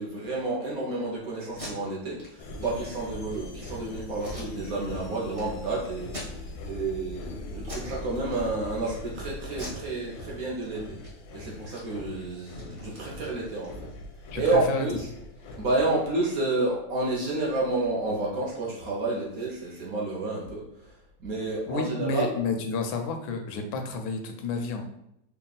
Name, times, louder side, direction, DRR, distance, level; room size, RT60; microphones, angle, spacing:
voice 1, 0.0-11.0 11.3-13.8 14.3-15.1 15.6-20.9 21.2-22.3, right 2 dB, 60° right, -4 dB, 1.1 m, -30 dB
Packing tape duct tape, 1.4-1.7 2.2-2.3 2.6-2.7 3.1-3.5 4.2-5.0 5.3-5.4 6.0-6.7 7.1-7.3 7.6-7.9 8.2-8.9 9.5-10.6 10.9-11.1 11.4-14.0, left 1 dB, 30° right, 0.7 m, -43 dB
sound 1, 2.4-16.1, left 2 dB, 70° left, 1.0 m, -41 dB
voice 2, 14.3-14.9 21.7-24.8, left 3 dB, 90° left, 5 dB, 1.4 m, -30 dB
3.5 x 2.3 x 3.9 m, 0.80 s
omnidirectional pair, 2.1 m